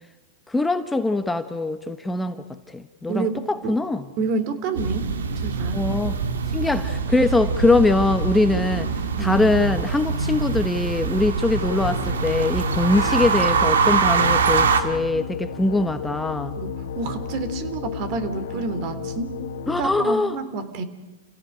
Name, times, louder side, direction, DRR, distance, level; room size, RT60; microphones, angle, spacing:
voice 1, 0.5-4.0 5.7-6.2 6.5-8.9 9.2-16.6 19.7-20.4, left 2 dB, 5° left, 9 dB, 1.1 m, -22 dB
voice 2, 3.1-3.8 4.2-5.8 9.2-9.4 16.6-19.4 19.8-20.8, right 4 dB, 45° right, 12 dB, 2.9 m, -29 dB
sound 1, 4.7-14.8, right 5 dB, 85° right, 2.1 m, -23 dB
sound 2, 11.6-20.0, left 6 dB, 70° left, 1.2 m, -33 dB
29.0 x 17.0 x 9.0 m, 1.2 s
hypercardioid pair, 120°, 0 cm